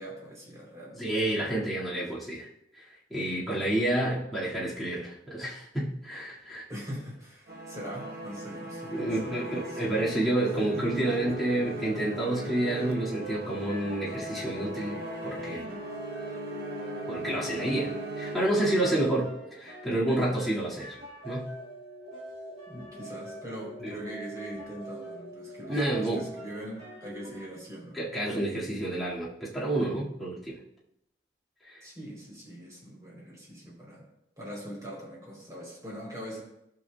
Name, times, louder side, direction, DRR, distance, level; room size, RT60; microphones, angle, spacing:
voice 1, 0.0-1.1 6.7-9.8 10.4-10.8 11.7-11.8 22.7-28.1 31.8-34.0 34.4-36.4, equal, 15° right, -4 dB, 3.2 m, -42 dB
voice 2, 0.9-2.5 2.8-2.9 3.1-6.6 8.9-15.6 17.1-21.0 21.2-21.6 23.8-23.9 25.7-26.3 27.9-30.6 31.6-31.8, right 1 dB, ahead, -9 dB, 1.9 m, -29 dB
sound 1, 7.5-18.9, right 1 dB, 50° right, 1.1 m, -38 dB
sound 2, 13.2-27.5, right 1 dB, 35° right, 2.7 m, -43 dB
15.0 x 6.2 x 2.2 m, 0.82 s
head